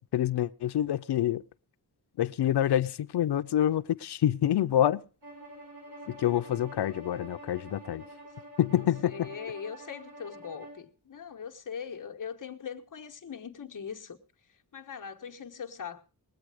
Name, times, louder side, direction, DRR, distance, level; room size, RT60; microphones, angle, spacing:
voice 1, 0.0-1.4 2.2-5.0 6.1-8.0 8.6-9.3, left 11 dB, 85° left, 0.6 m, -27 dB
Bowed string instrument, 5.2-10.8, right 1 dB, 85° right, 8.0 m, -47 dB
voice 2, 9.0-14.2 14.7-16.0, left 7 dB, 50° left, 1.2 m, -41 dB
20.0 x 8.4 x 4.8 m
wide cardioid pair, 150°, 39 cm